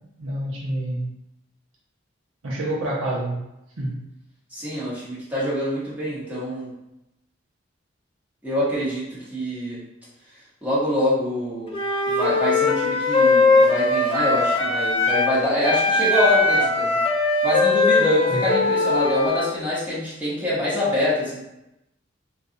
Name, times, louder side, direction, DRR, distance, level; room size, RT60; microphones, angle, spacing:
voice 1, 0.2-1.1 2.4-3.4 3.8-4.0 18.3-18.4, right 1 dB, 85° right, -4 dB, 0.8 m, -27 dB
voice 2, 4.5-6.7 8.4-9.8 10.6-11.7 12.1-17.0 17.4-21.4, left 1 dB, 10° right, -9 dB, 1.0 m, -25 dB
Wind instrument woodwind instrument, 11.7-15.3 15.6-19.5, left 3 dB, 25° left, 0.4 m, -20 dB
2.6 x 2.3 x 3.8 m, 0.90 s
head